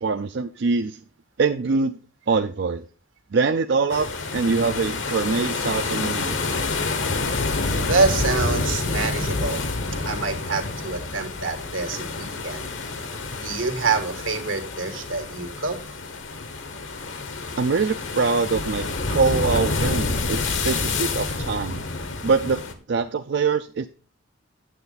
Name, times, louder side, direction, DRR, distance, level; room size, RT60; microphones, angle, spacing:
voice 1, 0.0-1.0 1.4-2.0 2.3-2.8 3.3-6.3 17.6-18.8 19.1-21.8 22.2-22.6 22.9-23.9, right 4 dB, 60° right, 8 dB, 0.5 m, -23 dB
sound 1, 3.9-22.7, left 3 dB, 70° left, 1.2 m, -28 dB
voice 2, 7.8-9.6 10.0-12.7 13.4-15.8, right 4 dB, 85° right, 6 dB, 1.8 m, -26 dB
9.3 x 7.6 x 4.0 m, 0.37 s
head